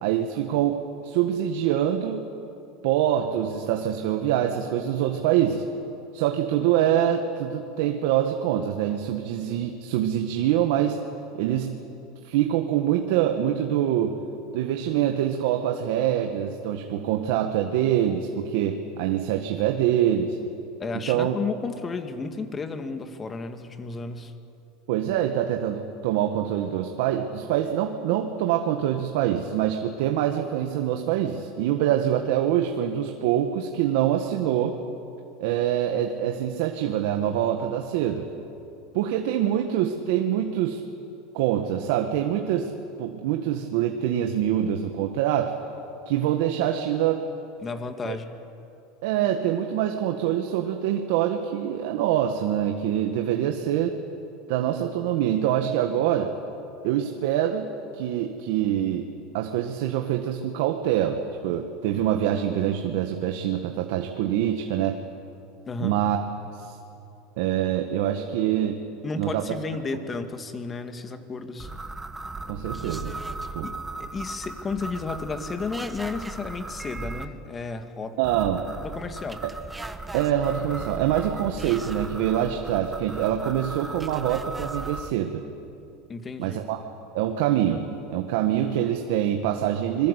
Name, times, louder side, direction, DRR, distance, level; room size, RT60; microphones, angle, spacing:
voice 1, 0.0-2.2 2.8-5.6 6.1-11.1 11.3-11.8 12.2-14.2 14.5-20.4 21.1-21.4 24.9-34.8 35.4-38.3 38.9-40.8 41.3-42.7 43.0-45.6 46.0-47.2 48.0-48.1 49.0-54.0 54.5-56.3 56.8-59.1 59.3-65.0 65.8-66.2 66.5-66.8 67.4-68.8 69.2-69.4 72.5-73.1 73.5-73.7 78.2-78.7 80.1-85.4 86.4-86.8 87.1-90.1, right 10 dB, 70° right, 4 dB, 1.7 m, -25 dB
voice 2, 20.8-24.3 47.6-48.4 65.7-66.0 69.0-71.7 73.6-78.2 78.8-79.4 86.1-86.6, left 4 dB, 20° left, 8 dB, 1.9 m, -33 dB
sound 1, 71.6-77.3 78.2-85.1, right 3 dB, 10° right, 1.2 m, -37 dB
26.0 x 22.5 x 8.3 m, 2.7 s
supercardioid pair, 135°, 0 cm